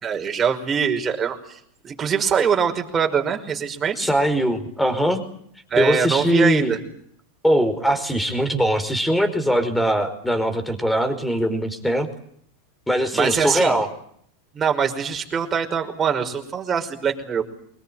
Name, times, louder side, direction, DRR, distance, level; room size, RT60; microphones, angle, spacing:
voice 1, 0.0-4.1 5.7-6.8 13.1-13.7 14.5-17.4, right 7 dB, 25° right, 3 dB, 5.4 m, -23 dB
voice 2, 4.0-5.2 5.8-6.7 7.4-12.1 12.9-13.9, equal, 5° left, 10 dB, 5.1 m, -21 dB
24.0 x 21.0 x 9.2 m, 0.67 s
hypercardioid pair, 115°, 0 cm